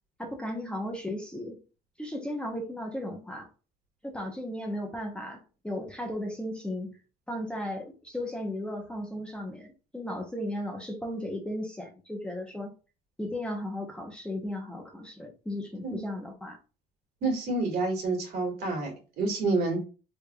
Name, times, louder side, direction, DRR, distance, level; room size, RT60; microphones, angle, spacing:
voice 1, 0.2-1.6 2.0-3.5 4.0-6.9 7.3-12.7 13.2-16.6, left 1 dB, 5° left, 0.8 m, -35 dB
voice 2, 17.2-19.8, right 3 dB, 65° right, 1.9 m, -28 dB
3.4 x 3.3 x 2.3 m
cardioid pair, 110°, 17 cm